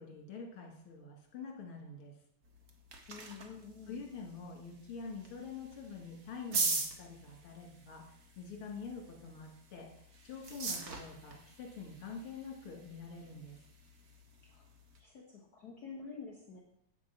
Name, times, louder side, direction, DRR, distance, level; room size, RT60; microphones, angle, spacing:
voice 1, 0.0-2.1 3.9-13.6, left 4 dB, 75° left, 0 dB, 2.8 m, -46 dB
sound 1, 2.4-15.0, right 4 dB, 45° right, 1.7 m, -43 dB
voice 2, 3.1-4.0 14.5-14.6 15.0-16.6, left 5 dB, 50° left, -2 dB, 1.6 m, -48 dB
8.5 x 7.7 x 5.8 m, 0.74 s
omnidirectional pair, 2.4 m